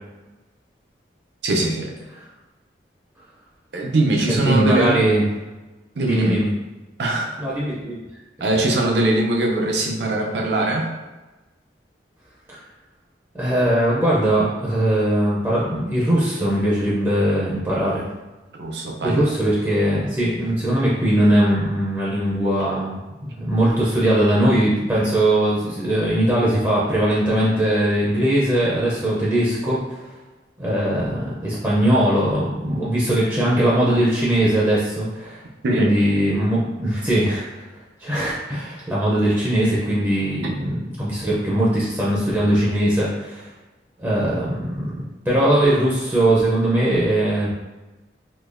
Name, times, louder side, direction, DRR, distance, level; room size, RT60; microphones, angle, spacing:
voice 1, 1.4-1.9 3.7-5.1 6.0-6.4 7.0-7.3 8.4-10.9 18.6-19.3 35.6-35.9, right 2 dB, 70° right, 0 dB, 0.6 m, -21 dB
voice 2, 4.3-5.3 6.0-6.5 7.4-8.0 13.3-18.1 19.0-23.0 23.4-30.0 30.6-35.4 35.7-37.6 38.0-43.5 44.0-47.5, right 1 dB, 15° right, -7 dB, 0.5 m, -20 dB
3.8 x 2.7 x 2.5 m, 1.1 s
head